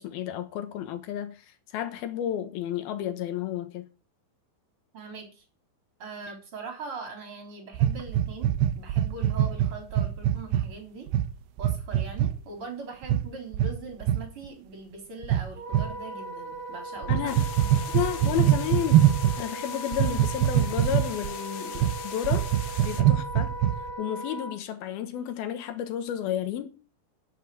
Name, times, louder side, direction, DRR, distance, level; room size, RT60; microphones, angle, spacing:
voice 1, 0.0-3.9 17.1-17.4 17.9-19.0 19.4-22.5 22.8-23.5 24.0-26.7, left 10 dB, 70° left, 2.9 m, -32 dB
voice 2, 4.9-5.4 6.0-8.5 8.8-11.1 11.6-17.2, right 4 dB, 35° right, 4.0 m, -41 dB
sound 1, 7.7-10.7 11.1-11.3 11.6-12.3 13.0-13.2 13.5-13.7 14.0-14.2 15.2-15.9 17.0-19.4 19.9-21.3 21.8-21.9 22.2-23.9, right 11 dB, 75° right, 2.8 m, -23 dB
Wind instrument woodwind instrument, 15.6-24.6, right 1 dB, 50° right, 2.6 m, -38 dB
sound 2, 17.3-23.0, left 10 dB, 85° left, 3.7 m, -42 dB
10.5 x 7.9 x 9.0 m
omnidirectional pair, 4.9 m